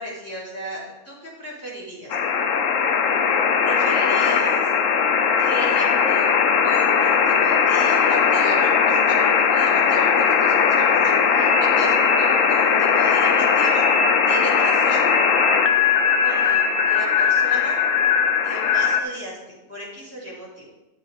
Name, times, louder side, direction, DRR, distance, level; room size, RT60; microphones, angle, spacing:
voice 1, 0.0-2.3 3.6-4.7 5.4-6.3 6.6-13.9 14.3-15.0 16.2-17.8 18.4-20.7, right 1 dB, 10° left, -8 dB, 4.2 m, -35 dB
sound 1, 2.1-19.0, left 6 dB, 70° left, 1.1 m, -19 dB
12.5 x 7.5 x 3.6 m, 1.0 s
omnidirectional pair, 1.5 m